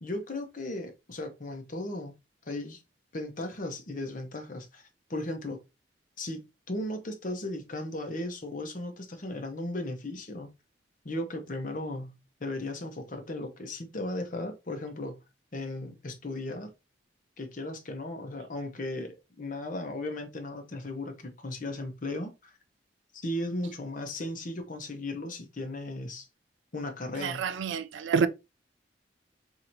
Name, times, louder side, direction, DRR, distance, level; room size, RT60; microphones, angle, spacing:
voice 1, 0.0-2.2 2.5-2.8 3.1-4.8 5.1-5.6 6.2-6.4 6.7-10.5 11.0-15.2 15.5-16.7 17.4-22.5 23.1-26.3 26.7-27.5, left 1 dB, 45° left, 0.9 m, -36 dB
voice 2, 27.2-28.3, right 6 dB, 90° right, 0.4 m, -27 dB
4.5 x 2.7 x 2.6 m
head